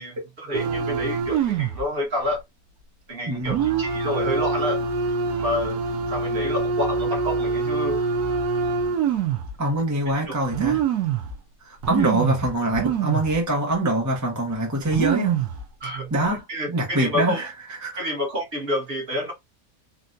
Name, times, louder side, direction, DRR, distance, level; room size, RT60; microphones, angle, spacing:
voice 1, 0.0-2.4 3.1-4.8 5.4-5.8 6.1-8.0 10.1-10.4 12.0-12.1 15.8-17.5 18.0-19.3, left 1 dB, 40° right, 1.3 m, -29 dB
sound 1, 0.5-1.9 2.2-2.4 3.5-9.5 10.1-10.2 10.5-11.4 11.8-13.4 13.7-13.8 14.5-14.6 14.8-15.6 16.2-16.4, right 5 dB, 80° right, 1.3 m, -25 dB
voice 2, 3.3-3.7 9.6-10.8 11.6-15.5 16.1-16.4 16.7-17.5 17.8-18.0, right 1 dB, 20° right, 0.5 m, -24 dB
4.0 x 2.2 x 2.5 m
omnidirectional pair, 1.6 m